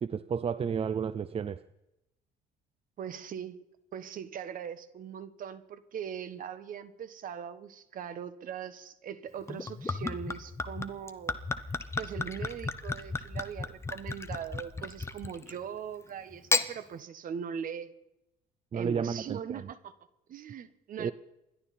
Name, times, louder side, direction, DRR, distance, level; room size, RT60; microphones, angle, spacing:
voice 1, 0.0-1.6 18.7-19.7 21.0-21.1, right 6 dB, 35° right, 14 dB, 0.6 m, -32 dB
voice 2, 3.0-3.6 3.9-11.3 12.0-17.9 18.7-19.9 20.3-21.1, right 8 dB, 55° right, 14 dB, 1.4 m, -40 dB
Gurgling / Chink clink / Liquid, 9.5-15.6 16.3-16.7, left 3 dB, 15° left, 1.1 m, -34 dB
28.0 x 11.5 x 4.3 m, 0.89 s
cardioid pair, 110°, 17 cm